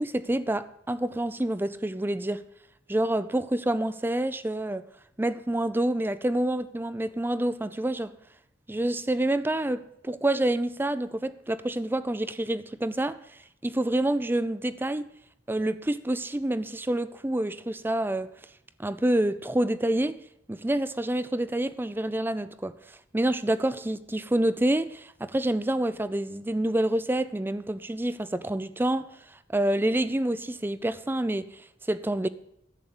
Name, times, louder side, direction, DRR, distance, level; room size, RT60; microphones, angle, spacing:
voice 1, 0.0-2.4 2.9-4.9 5.2-8.1 8.7-15.1 15.5-18.3 18.8-20.2 20.5-32.3, right 1 dB, 10° right, 0.4 m, -28 dB
11.5 x 8.1 x 7.1 m
head